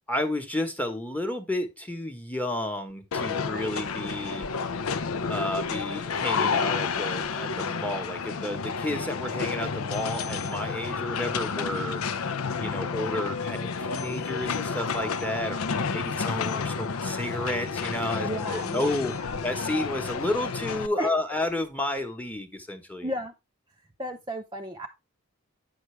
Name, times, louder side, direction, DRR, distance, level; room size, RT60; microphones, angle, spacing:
voice 1, 0.1-4.5 5.3-12.0 12.5-18.3 18.7-19.1 19.4-23.1, left 1 dB, 5° left, 6 dB, 1.0 m, -31 dB
sound 1, 3.1-20.9, left 5 dB, 75° left, 0.6 m, -30 dB
voice 2, 18.2-19.4 21.0-21.1 23.0-23.3 24.0-24.9, equal, 20° right, 3 dB, 0.6 m, -33 dB
9.3 x 6.0 x 3.2 m, 0.23 s
head